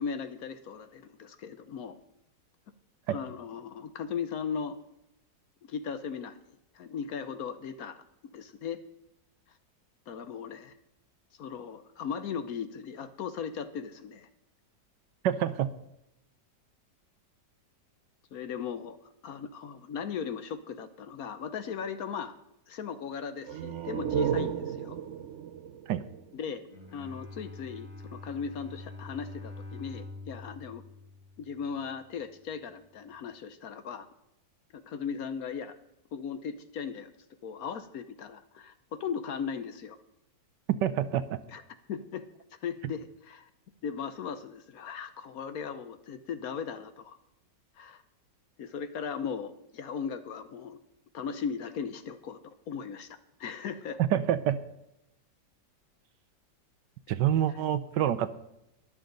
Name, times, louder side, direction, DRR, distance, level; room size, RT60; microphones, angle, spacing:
voice 1, 0.0-2.0 3.1-4.8 5.7-6.4 6.7-8.0 8.3-8.8 10.1-10.7 11.4-14.3 18.3-19.0 19.2-22.3 22.7-25.0 26.3-26.6 26.9-30.8 31.4-34.1 34.7-35.8 36.1-37.1 37.4-40.0 41.5-41.6 41.9-42.2 42.6-43.5 43.8-47.2 47.8-48.0 48.6-50.8 51.1-54.0 57.5-57.6, left 6 dB, 60° left, 11 dB, 1.1 m, -37 dB
voice 2, 15.2-15.7 25.9-26.0 40.8-41.2 54.0-54.6 57.1-58.3, right 10 dB, 80° right, 12 dB, 1.3 m, -27 dB
sound 1, 23.4-27.0, right 8 dB, 55° right, 0.8 m, -34 dB
Bowed string instrument, 26.6-31.9, left 2 dB, 35° left, 2.6 m, -45 dB
22.0 x 7.4 x 3.9 m, 0.84 s
omnidirectional pair, 1.9 m